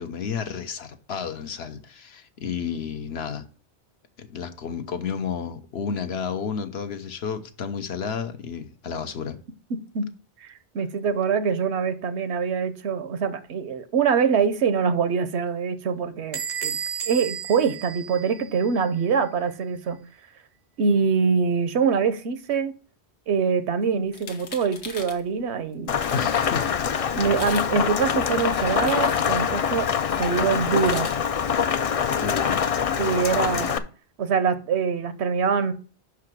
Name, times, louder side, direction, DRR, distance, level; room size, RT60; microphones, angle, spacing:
voice 1, 0.0-3.4 4.2-9.4 26.1-26.7 32.2-32.7, left 6 dB, 75° left, 1.1 m, -31 dB
voice 2, 10.4-16.8 17.0-20.0 20.8-22.8 23.3-26.0 27.1-29.9 30.2-31.1 33.0-33.8 34.2-35.7, right 6 dB, 85° right, 1.0 m, -24 dB
Bell / Door, 16.3-18.8, right 7 dB, 50° right, 0.5 m, -33 dB
sound 1, 24.1-25.2 25.7-25.8 26.0-26.5 27.2-27.7 28.0-29.5 30.6-31.2, left 4 dB, 90° left, 1.4 m, -40 dB
Rain, 25.9-33.8, left 7 dB, 55° left, 0.4 m, -24 dB
5.7 x 4.9 x 6.0 m
omnidirectional pair, 1.1 m